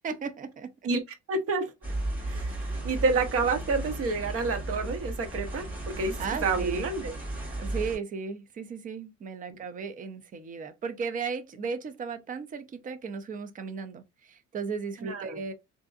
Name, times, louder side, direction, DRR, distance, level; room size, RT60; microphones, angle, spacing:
voice 1, 0.0-0.7 2.2-2.8 6.2-6.8 7.6-15.5, right 5 dB, 30° right, 0.5 m, -36 dB
voice 2, 1.3-1.7 2.3-7.1 15.0-15.4, right 4 dB, 50° right, 0.9 m, -29 dB
sound 1, 1.8-8.0, right 1 dB, 5° right, 2.2 m, -35 dB
3.5 x 2.6 x 2.4 m
cardioid pair, 145°, 29 cm